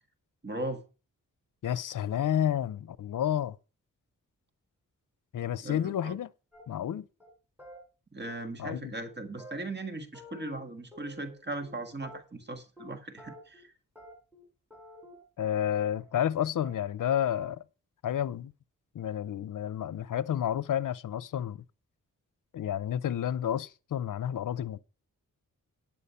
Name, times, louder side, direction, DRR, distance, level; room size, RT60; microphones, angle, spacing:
voice 1, 0.4-0.8 5.6-6.2 8.1-13.7, right 2 dB, 30° right, 1.6 m, -38 dB
voice 2, 1.6-3.6 5.3-6.3 6.7-7.0 8.6-8.9 15.4-17.6 18.0-18.5 18.9-21.6 22.5-24.8, left 10 dB, 70° left, 0.6 m, -30 dB
sound 1, 6.5-6.9 7.2-7.3 7.6-7.8 8.3-8.8 9.0-9.1 9.4-10.6 10.9-11.7 12.0-12.5 12.8-12.9 13.2-13.6 13.9-14.4 14.7-16.3 16.6-17.0 17.3-17.5, equal, 5° right, 5.6 m, -51 dB
9.9 x 7.2 x 5.5 m
cardioid pair, 70°, 33 cm